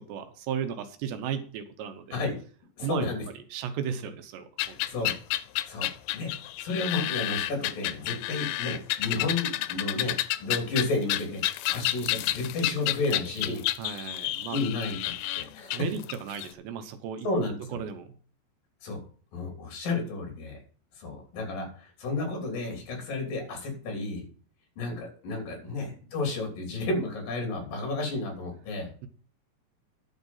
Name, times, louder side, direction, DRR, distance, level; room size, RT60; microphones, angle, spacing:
voice 1, 0.1-2.0 2.8-3.1 3.5-4.8 13.8-14.6 15.7-17.3 17.7-18.1 25.7-25.8, right 8 dB, 80° right, 8 dB, 3.1 m, -35 dB
voice 2, 2.8-3.2 4.9-5.1 5.7-6.3 6.6-14.0 14.5-15.9 17.2-17.8 18.8-19.0 19.3-20.6 21.0-24.2 24.8-28.9, left 3 dB, 55° left, 2 dB, 4.6 m, -32 dB
sound 1, 4.6-16.5, left 15 dB, 85° left, 2.8 m, -30 dB
10.5 x 6.9 x 5.5 m, 0.42 s
omnidirectional pair, 5.0 m